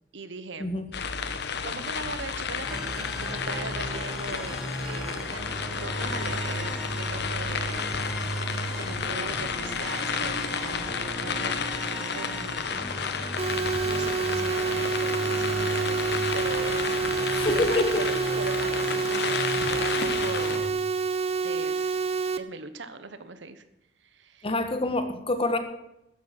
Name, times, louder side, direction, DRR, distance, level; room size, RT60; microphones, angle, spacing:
voice 1, 0.1-0.7 1.3-4.6 4.8-7.9 8.2-11.6 12.1-12.6 13.8-20.6 21.0-21.1 21.4-22.1 22.4-23.6 24.0-24.5, right 3 dB, 75° right, 11 dB, 1.2 m, -40 dB
sound 1, 0.9-20.6, left 6 dB, 65° left, 1.1 m, -32 dB
sound 2, 2.7-20.7, right 1 dB, ahead, 1.9 m, -36 dB
sound 3, 13.4-22.4, right 5 dB, 35° right, 0.8 m, -28 dB
voice 2, 17.3-18.0 24.4-25.6, left 2 dB, 30° left, 8 dB, 1.5 m, -26 dB
13.5 x 10.5 x 6.1 m, 0.86 s
head